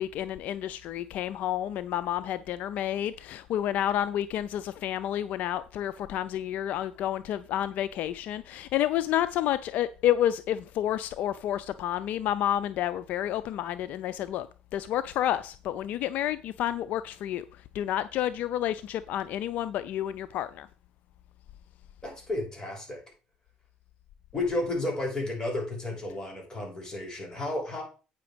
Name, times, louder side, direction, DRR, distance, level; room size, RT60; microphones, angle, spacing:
voice 1, 0.0-14.5 14.7-17.4 17.7-20.7, left 11 dB, 70° left, 0.4 m, -30 dB
voice 2, 22.0-23.0 24.3-27.8, left 2 dB, 25° left, 6.1 m, -32 dB
9.0 x 5.8 x 5.1 m
supercardioid pair, 80°, 3 cm